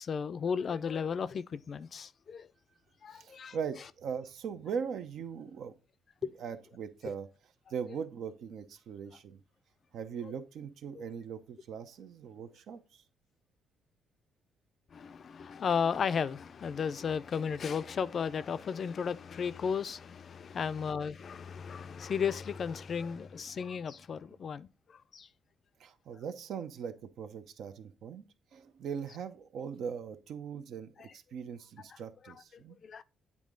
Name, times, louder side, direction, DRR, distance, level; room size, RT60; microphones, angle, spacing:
voice 1, 0.0-2.5 3.0-3.6 6.2-6.3 10.2-10.4 14.9-24.7 25.1-25.3 32.2-32.3 32.8-33.0, left 6 dB, 50° left, 0.4 m, -34 dB
voice 2, 3.1-5.7 6.4-7.3 7.7-9.4 9.9-13.0 25.8-28.2 28.5-32.8, right 7 dB, 75° right, 0.7 m, -40 dB
8.5 x 3.7 x 3.8 m
cardioid pair, 90°, 0 cm